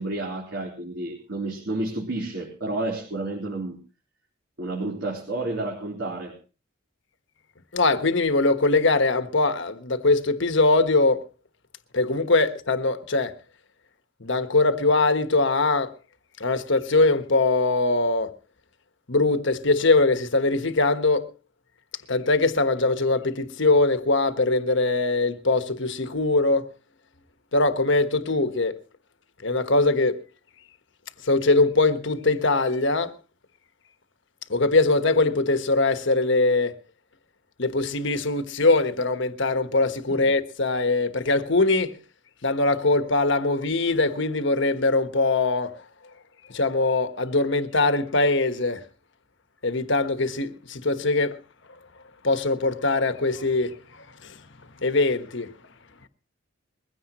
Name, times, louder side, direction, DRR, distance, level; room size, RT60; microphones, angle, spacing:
voice 1, 0.0-3.8 4.6-6.3 40.1-40.2, right 2 dB, 60° right, 4.0 m, -30 dB
voice 2, 7.7-11.2 11.9-13.3 14.2-15.9 16.4-18.3 19.1-21.3 22.1-26.7 27.5-28.8 29.4-30.2 31.2-33.1 34.5-36.7 37.6-42.0 42.4-45.8 46.5-48.8 49.6-51.4 52.2-53.8 54.8-55.5, left 3 dB, 60° left, 1.3 m, -22 dB
21.5 x 16.0 x 3.1 m
head